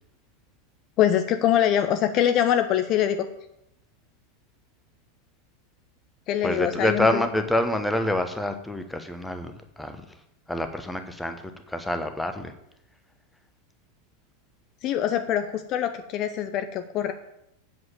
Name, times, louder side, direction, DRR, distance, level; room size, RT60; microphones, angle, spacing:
voice 1, 1.0-3.3 6.3-7.2 14.8-17.1, left 10 dB, 35° left, 9 dB, 0.6 m, -23 dB
voice 2, 6.4-9.5 9.8-10.0 10.5-12.5, left 1 dB, 5° left, 7 dB, 1.1 m, -26 dB
7.9 x 7.8 x 7.6 m, 0.83 s
figure-of-eight pair, 90°, 0 cm